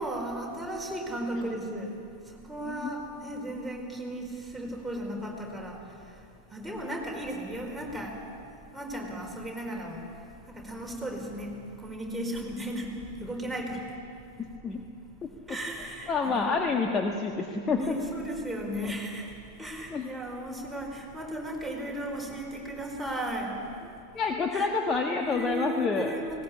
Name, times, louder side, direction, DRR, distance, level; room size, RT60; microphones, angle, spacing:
voice 1, 0.0-2.0 2.3-5.9 6.5-8.2 8.7-10.1 10.5-13.9 15.5-16.6 17.8-19.3 19.6-23.6 24.5-24.7 25.2-26.4, right 1 dB, ahead, -2 dB, 4.7 m, -35 dB
voice 2, 14.4-14.8 16.1-17.9 19.9-20.1 24.1-26.1, left 4 dB, 20° left, 2 dB, 1.5 m, -28 dB
19.5 x 18.5 x 8.7 m, 2.5 s
figure-of-eight pair, 90°, 0 cm